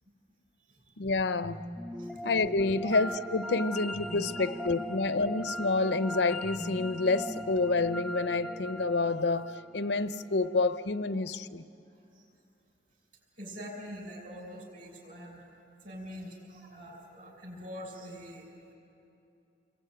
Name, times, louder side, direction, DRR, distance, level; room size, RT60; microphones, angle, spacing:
voice 1, 1.0-1.6 2.2-11.6, left 3 dB, 70° left, 12 dB, 0.7 m, -28 dB
sound 1, 1.4-10.6, left 1 dB, 5° right, 1.0 m, -39 dB
voice 2, 13.4-15.4 15.8-18.4, equal, 50° right, 0 dB, 6.7 m, -44 dB
28.0 x 22.5 x 9.0 m, 2.6 s
head